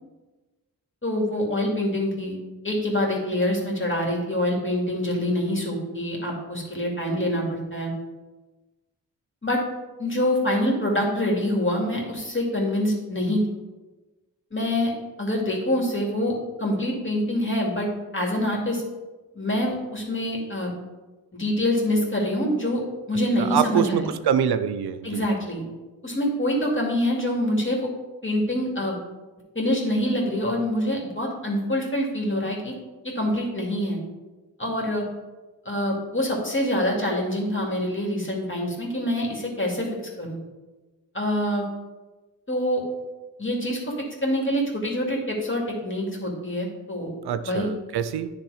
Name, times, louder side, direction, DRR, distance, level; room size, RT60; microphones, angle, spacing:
voice 1, 1.0-2.4 2.6-7.9 9.4-9.6 10.0-13.4 14.5-14.9 15.2-16.3 16.6-18.8 19.3-20.7 21.4-22.8 23.1-24.1 25.0-25.6 26.0-27.9 28.2-29.0 29.5-32.7 33.0-34.0 34.6-35.0 35.6-39.9 40.2-40.4 41.1-41.7 42.5-42.8 43.4-43.8 44.2-47.1 47.4-47.7, left 1 dB, 30° left, -1 dB, 2.5 m, -25 dB
voice 2, 23.4-25.2 47.2-48.4, right 8 dB, 90° right, 12 dB, 0.5 m, -25 dB
10.0 x 3.4 x 4.9 m, 1.2 s
cardioid pair, 45°, 38 cm